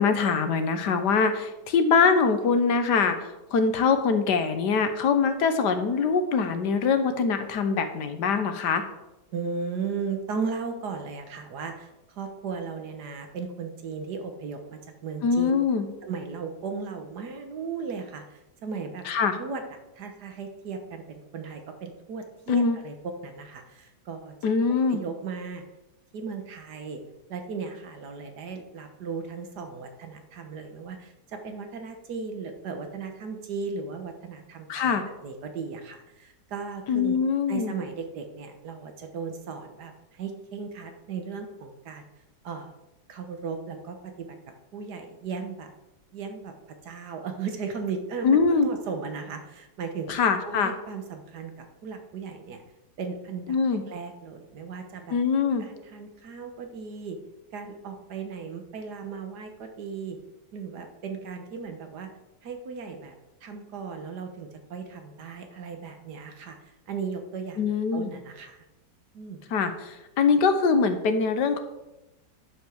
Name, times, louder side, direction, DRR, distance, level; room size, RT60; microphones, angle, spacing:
voice 1, 0.0-8.8 15.2-15.9 19.1-19.4 22.5-22.8 24.4-25.0 34.7-35.0 36.9-37.7 48.2-48.7 50.1-50.7 53.5-53.8 55.1-55.7 67.6-68.1 69.5-71.6, left 5 dB, 75° left, 8 dB, 1.5 m, -23 dB
voice 2, 9.3-15.5 16.0-19.0 19.4-19.6 20.0-22.9 23.2-24.3 24.9-25.6 26.1-27.0 27.3-37.2 37.5-42.0 42.4-42.7 43.1-44.3 44.7-45.7 46.1-46.5 46.8-50.1 50.4-52.6 53.0-53.6 53.9-55.2 55.6-57.2 57.5-60.2 60.5-62.1 62.4-63.1 63.4-66.6 66.9-67.6 67.9-68.6 69.1-69.4, right 5 dB, 70° right, 6 dB, 1.7 m, -36 dB
10.5 x 5.3 x 6.4 m, 0.98 s
omnidirectional pair, 1.9 m